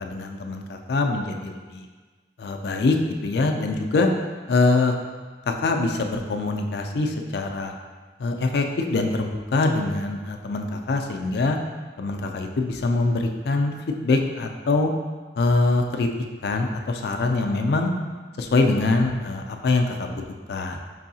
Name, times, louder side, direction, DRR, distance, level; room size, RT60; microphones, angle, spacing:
voice 1, 0.0-1.9 2.4-3.0 3.2-4.1 4.5-4.9 5.5-7.7 8.2-11.6 12.0-13.7 14.0-14.9 15.4-16.1 16.4-17.9 18.4-20.2 20.5-20.8, left 3 dB, 60° left, 4 dB, 0.4 m, -23 dB
5.4 x 2.7 x 2.7 m, 1.4 s
head